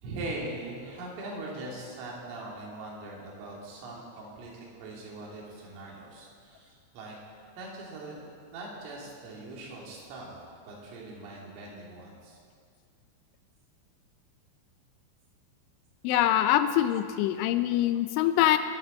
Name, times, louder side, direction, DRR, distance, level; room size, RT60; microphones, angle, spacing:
voice 1, 0.0-7.2 7.6-10.4 10.7-12.4, right 2 dB, 85° right, -3 dB, 5.2 m, -41 dB
voice 2, 16.0-18.6, left 12 dB, 85° left, 10 dB, 2.8 m, -24 dB
21.0 x 12.0 x 4.2 m, 2.2 s
omnidirectional pair, 5.7 m